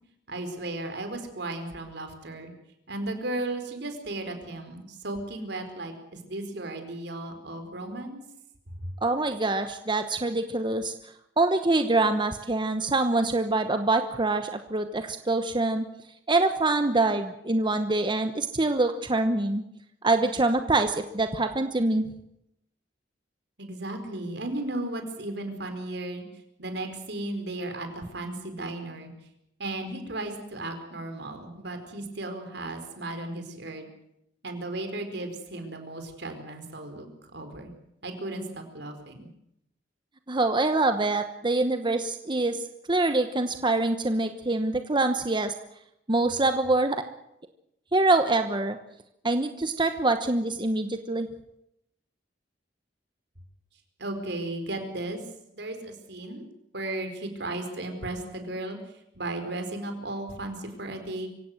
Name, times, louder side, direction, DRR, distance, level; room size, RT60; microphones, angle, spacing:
voice 1, 0.3-2.5 2.9-8.2 8.8-8.9 23.6-26.3 26.6-29.1 29.6-33.9 34.4-37.7 38.0-39.3 54.0-55.2 55.5-56.5 56.7-58.8 59.1-61.3, right 2 dB, 65° right, 6 dB, 4.6 m, -35 dB
voice 2, 9.0-10.9 11.4-15.9 16.3-19.6 20.0-22.1 40.3-42.6 42.9-45.5 46.1-47.0 47.9-48.8 49.2-51.3, right 2 dB, 25° right, 8 dB, 1.1 m, -25 dB
25.0 x 16.5 x 7.9 m, 0.80 s
head